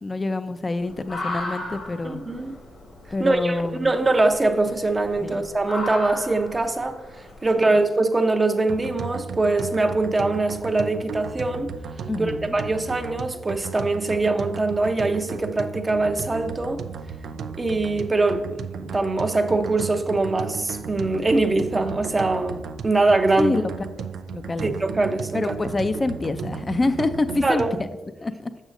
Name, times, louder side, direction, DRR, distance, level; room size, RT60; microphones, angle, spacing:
voice 1, 0.0-2.2 3.1-3.9 5.2-5.3 7.6-7.7 12.1-12.5 23.4-23.7 24.3-24.7 25.3-27.6 28.2-28.5, left 2 dB, 35° left, 0.4 m, -26 dB
sound 1, 0.8-7.5, left 2 dB, 65° left, 1.4 m, -36 dB
voice 2, 2.0-2.5 3.2-7.0 7.4-11.7 12.2-16.8 17.6-23.5 24.6-25.5 27.4-27.7, right 2 dB, 30° right, 0.7 m, -23 dB
sound 2, 8.7-27.9, right 6 dB, 80° right, 0.3 m, -35 dB
6.3 x 6.2 x 2.5 m
supercardioid pair, 50°, 0 cm